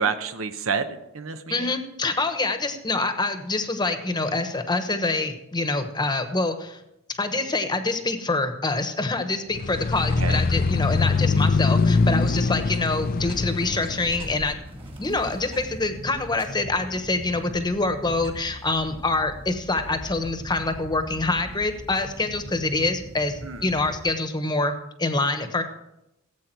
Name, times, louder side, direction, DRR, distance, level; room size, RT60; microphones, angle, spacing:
voice 1, 0.0-1.7 10.2-10.4 23.4-23.6, right 5 dB, 75° right, 9 dB, 0.9 m, -29 dB
voice 2, 1.5-6.8 7.2-14.6 15.0-25.6, left 3 dB, 20° left, 8 dB, 1.1 m, -26 dB
sound 1, 9.5-14.5, left 4 dB, 45° left, 0.4 m, -23 dB
sound 2, 9.7-24.1, equal, 25° right, 2.0 m, -41 dB
16.5 x 8.4 x 4.6 m, 0.87 s
head